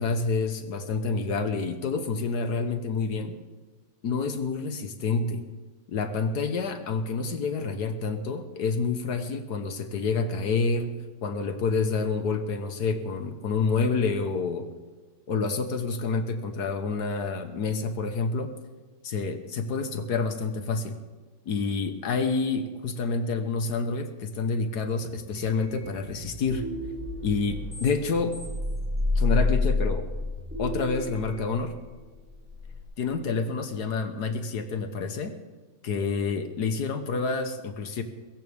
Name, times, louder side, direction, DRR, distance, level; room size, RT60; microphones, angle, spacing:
voice 1, 0.0-3.4 4.0-5.4 5.9-14.7 15.3-18.5 19.0-21.0 21.5-26.6 27.2-28.4 29.2-30.1 30.6-31.7 33.0-35.3 35.8-38.0, left 4 dB, 65° left, 8 dB, 1.8 m, -28 dB
sound 1, 25.0-32.8, left 3 dB, 5° right, 5.8 m, -30 dB
21.0 x 16.5 x 3.6 m, 1.4 s
omnidirectional pair, 1.9 m